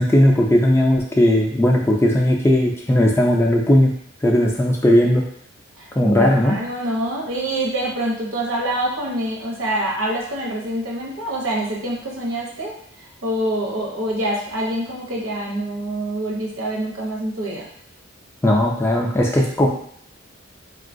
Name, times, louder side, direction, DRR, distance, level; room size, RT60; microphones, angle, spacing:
voice 1, 0.0-3.9 4.2-5.2 6.0-6.6 18.4-19.7, left 1 dB, 10° left, -1 dB, 0.3 m, -17 dB
voice 2, 5.8-12.8 13.2-17.7, right 1 dB, 75° right, -2 dB, 0.8 m, -25 dB
3.6 x 2.3 x 2.5 m, 0.64 s
head